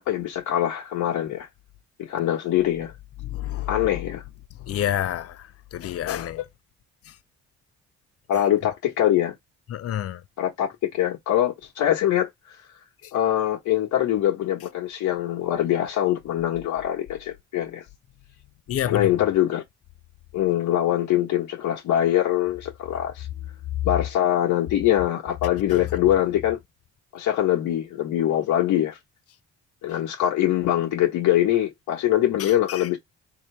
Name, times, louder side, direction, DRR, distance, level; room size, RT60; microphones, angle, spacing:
voice 1, 0.0-1.5 2.0-2.9 3.7-4.2 6.4-6.5 8.3-9.3 10.4-12.6 13.1-17.8 18.8-19.6 20.3-23.3 23.8-26.6 27.1-29.0 29.8-33.0, left 12 dB, 80° left, 1.2 m, -23 dB
voice 2, 3.2-3.9 4.7-6.4 9.7-10.2 13.0-13.1 18.7-19.1 32.4-32.9, left 11 dB, 50° left, 0.5 m, -29 dB
3.9 x 2.8 x 3.3 m
cardioid pair, 90°, 30 cm